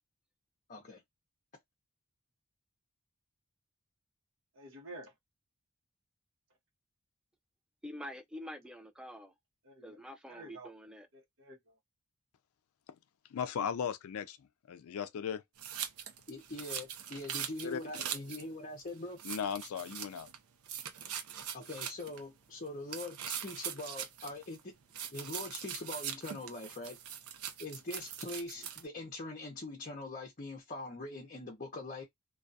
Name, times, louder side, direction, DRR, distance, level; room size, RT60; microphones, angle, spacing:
voice 1, 0.7-1.0 16.3-19.2 21.5-24.7 25.1-27.0 27.6-32.0, left 2 dB, 35° left, 0.6 m, -43 dB
voice 2, 4.5-5.1 9.6-10.0 10.3-10.7 11.1-11.8 18.0-18.3, right 1 dB, 60° right, 0.9 m, -51 dB
voice 3, 7.8-9.3 9.8-11.1, equal, 5° right, 0.3 m, -46 dB
voice 4, 13.3-15.4 17.6-17.8 19.2-20.3, left 7 dB, 75° left, 0.3 m, -37 dB
sound 1, 15.6-18.4 18.8-18.9 19.2-20.4 20.6-22.2 22.9-24.6 24.9-28.8, right 9 dB, 85° right, 0.6 m, -42 dB
2.3 x 2.3 x 2.5 m
head